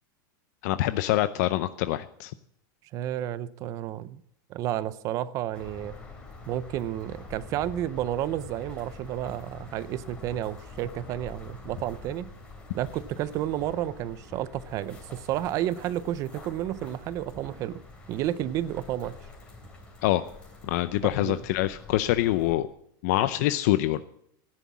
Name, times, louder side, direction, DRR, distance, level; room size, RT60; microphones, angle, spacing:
voice 1, 0.6-2.3 20.0-20.2 20.6-22.7 23.0-24.0, left 15 dB, 50° left, 12 dB, 0.6 m, -25 dB
voice 2, 2.9-4.2 4.5-5.9 6.5-12.3 12.7-17.8 18.1-19.2 21.2-21.4, right 12 dB, 30° right, 18 dB, 0.5 m, -31 dB
sound 1, 5.5-22.6, left 3 dB, 10° left, 3.0 m, -46 dB
13.5 x 10.5 x 7.3 m, 0.71 s
supercardioid pair, 170°, 12 cm